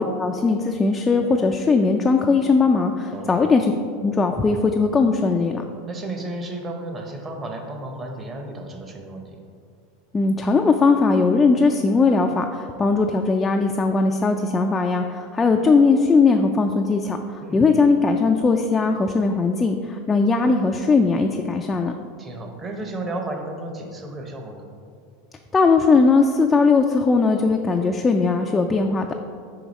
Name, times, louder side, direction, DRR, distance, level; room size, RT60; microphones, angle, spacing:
voice 1, 0.0-3.7 4.0-5.6 10.1-21.9 25.5-29.1, left 4 dB, 20° left, 3 dB, 0.3 m, -19 dB
voice 2, 5.9-9.4 17.4-17.6 22.2-24.7, right 1 dB, 25° right, 3 dB, 0.8 m, -33 dB
4.9 x 4.7 x 4.1 m, 2.2 s
supercardioid pair, 115°, 0 cm